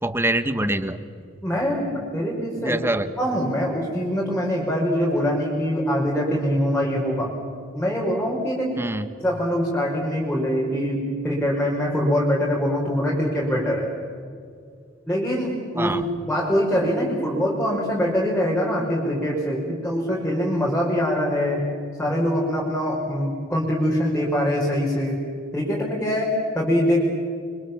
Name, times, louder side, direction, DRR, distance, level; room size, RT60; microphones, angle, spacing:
voice 1, 0.0-1.0 2.6-3.1 8.8-9.1 15.8-16.0, right 1 dB, 10° right, 11 dB, 1.3 m, -24 dB
voice 2, 1.4-2.8 3.2-7.3 7.7-8.8 9.2-13.9 15.1-16.0 16.2-21.7 22.0-25.2 25.5-27.0, equal, 5° left, -5 dB, 5.1 m, -23 dB
30.0 x 25.0 x 7.4 m, 2.2 s
head